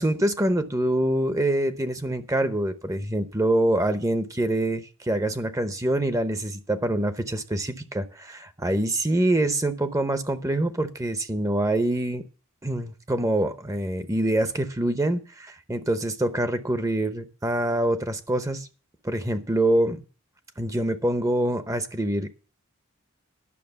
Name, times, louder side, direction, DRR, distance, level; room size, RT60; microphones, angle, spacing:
voice 1, 0.0-12.2 12.6-18.7 19.0-20.0 20.6-22.3, right 1 dB, 15° right, 10 dB, 0.8 m, -25 dB
11.0 x 6.3 x 7.9 m, 0.36 s
head